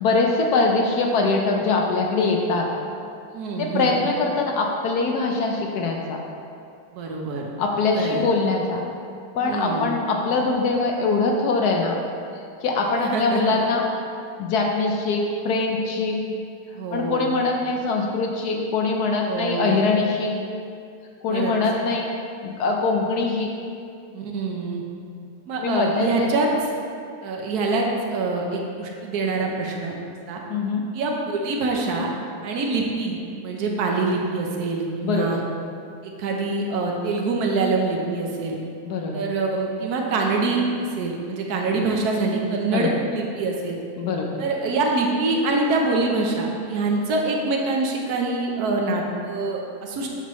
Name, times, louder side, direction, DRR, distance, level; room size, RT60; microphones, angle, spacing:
voice 1, 0.0-2.7 3.6-6.2 7.6-8.8 9.3-12.0 12.6-13.9 14.4-16.2 16.9-20.3 21.2-22.1 22.4-23.5 25.6-26.3 30.5-30.8 35.0-35.4 38.8-39.3 42.7-43.0 44.0-44.4, left 3 dB, 70° left, 1 dB, 0.9 m, -23 dB
voice 2, 3.3-3.9 6.9-7.5 7.9-8.2 9.4-9.9 13.0-13.6 16.7-17.3 19.2-19.8 21.3-21.5 24.1-24.8 25.5-26.5 27.2-29.9 30.3-30.4 30.9-32.1 32.4-33.2 33.4-35.4 36.0-38.6 39.1-43.8 44.4-50.1, right 3 dB, 55° right, 0 dB, 1.1 m, -25 dB
8.2 x 7.2 x 3.1 m, 2.4 s
omnidirectional pair, 2.4 m